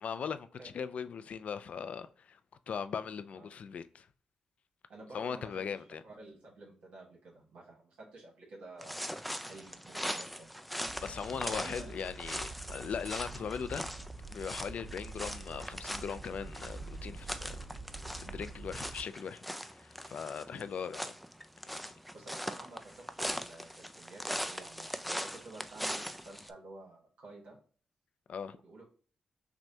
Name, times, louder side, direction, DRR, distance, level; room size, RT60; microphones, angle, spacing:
voice 1, 0.0-2.4 2.7-4.1 5.1-6.0 11.0-13.9 14.3-17.7 18.1-19.4 19.8-21.2 28.3-28.6, left 6 dB, 70° left, 0.4 m, -39 dB
voice 2, 4.9-9.1 9.4-10.6 11.5-11.9 20.5-20.7 22.1-27.6 28.4-28.8, right 2 dB, 85° right, 1.4 m, -51 dB
sound 1, 8.8-26.5, equal, ahead, 0.4 m, -41 dB
Animal, 10.8-19.0, right 3 dB, 65° right, 2.0 m, -46 dB
6.0 x 2.2 x 2.7 m
cardioid pair, 65°, 2 cm